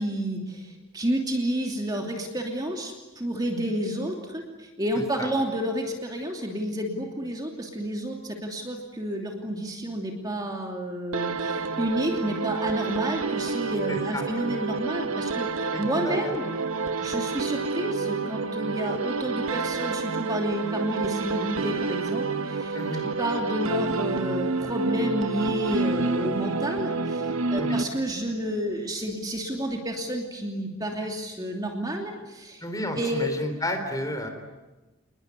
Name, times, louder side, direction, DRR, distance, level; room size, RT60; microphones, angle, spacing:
voice 1, 0.0-16.5 17.0-32.6 33.0-33.3, equal, 20° right, 1 dB, 2.8 m, -30 dB
voice 2, 5.0-5.3 13.9-14.2 15.7-16.2 22.7-23.1 27.5-27.8 32.6-34.3, left 1 dB, 15° left, 6 dB, 3.9 m, -32 dB
sound 1, 11.1-28.3, right 4 dB, 90° right, 1.2 m, -29 dB
29.5 x 21.0 x 9.7 m, 1.1 s
head